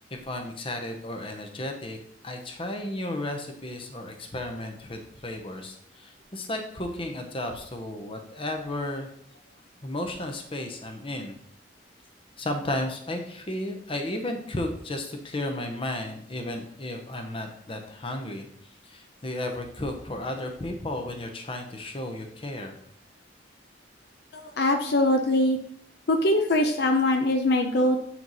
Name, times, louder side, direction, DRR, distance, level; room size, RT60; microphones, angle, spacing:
voice 1, 0.1-2.0 2.2-9.1 9.8-11.3 12.4-18.5 18.8-22.8, left 1 dB, 30° left, 4 dB, 0.9 m, -33 dB
voice 2, 24.3-25.6 26.1-28.0, left 1 dB, 60° left, 4 dB, 0.6 m, -22 dB
7.7 x 4.5 x 4.0 m, 0.65 s
head